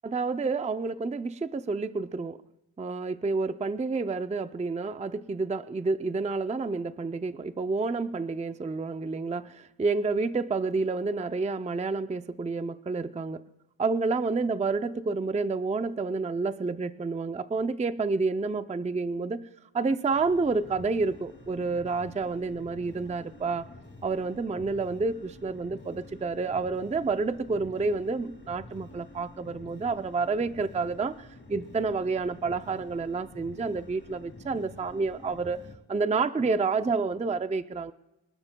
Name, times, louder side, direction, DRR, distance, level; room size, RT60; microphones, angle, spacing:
voice 1, 0.0-2.4 2.8-13.4 13.8-19.5 19.7-23.7 24.0-35.6 35.9-37.9, right 4 dB, 15° right, 11 dB, 0.4 m, -29 dB
sound 1, 20.1-35.7, left 2 dB, 25° left, 2.2 m, -49 dB
26.0 x 13.0 x 2.2 m, 0.96 s
wide cardioid pair, 120°, 47 cm